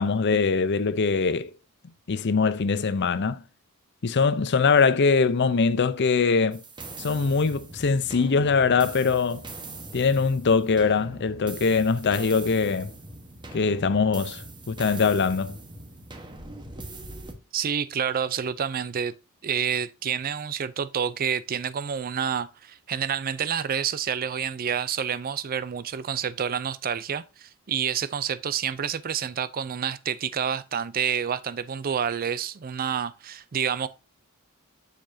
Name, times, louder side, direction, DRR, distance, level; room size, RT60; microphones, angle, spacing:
voice 1, 0.0-1.5 2.1-3.4 4.0-6.6 7.0-9.4 9.9-12.9 13.5-15.6, left 5 dB, 50° left, 0.6 m, -22 dB
sound 1, 6.5-17.3, right 2 dB, 20° right, 1.2 m, -41 dB
voice 2, 17.5-19.1 19.4-33.9, right 7 dB, 40° right, 0.4 m, -28 dB
7.6 x 6.8 x 2.7 m
head